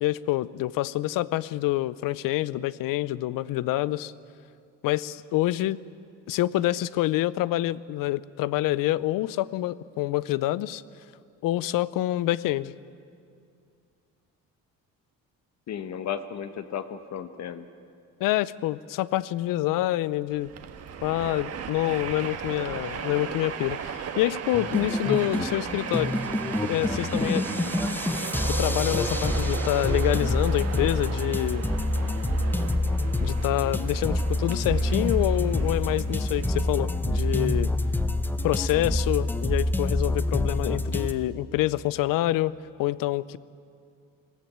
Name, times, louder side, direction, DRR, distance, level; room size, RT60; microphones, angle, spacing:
voice 1, 0.0-4.1 4.8-5.8 6.3-10.8 11.4-12.7 18.2-20.5 21.0-26.2 26.6-27.7 28.5-31.7 33.2-37.7 38.4-42.5 42.8-43.4, left 16 dB, 80° left, 19 dB, 0.6 m, -27 dB
voice 2, 15.7-17.7, left 8 dB, 55° left, 11 dB, 1.0 m, -34 dB
Train, 20.3-37.9, right 7 dB, 45° right, 1.4 m, -36 dB
sound 1, 24.5-41.1, left 1 dB, 5° left, 0.8 m, -27 dB
21.5 x 15.0 x 8.7 m, 2.4 s
cardioid pair, 130°, 33 cm